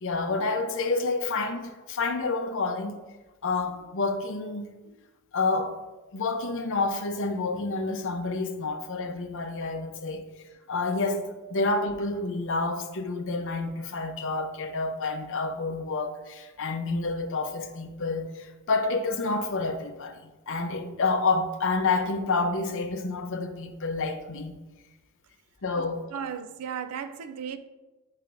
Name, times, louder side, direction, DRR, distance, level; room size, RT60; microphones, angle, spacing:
voice 1, 0.0-3.0 3.4-5.0 5.3-5.8 6.1-10.3 10.7-24.5 25.6-26.0, left 3 dB, 60° left, 0.7 m, -29 dB
voice 2, 25.8-27.6, right 8 dB, 85° right, 0.4 m, -36 dB
8.6 x 5.7 x 2.5 m
head